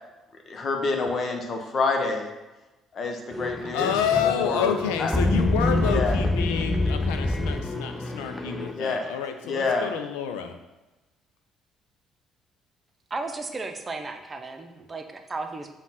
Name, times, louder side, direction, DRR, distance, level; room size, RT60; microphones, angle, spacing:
voice 1, 0.5-2.3 2.9-3.9 4.2-4.7 5.0-5.1 5.9-6.2 8.7-9.0 9.4-9.9, left 3 dB, 45° left, 3 dB, 0.9 m, -27 dB
sound 1, 3.3-8.7, left 2 dB, 15° left, 0.7 m, -26 dB
voice 2, 3.7-10.5, left 8 dB, 70° left, 7 dB, 0.5 m, -28 dB
voice 3, 13.1-15.7, right 3 dB, 30° right, 5 dB, 0.7 m, -34 dB
7.3 x 2.4 x 5.6 m, 1.1 s
figure-of-eight pair, 50°, 0 cm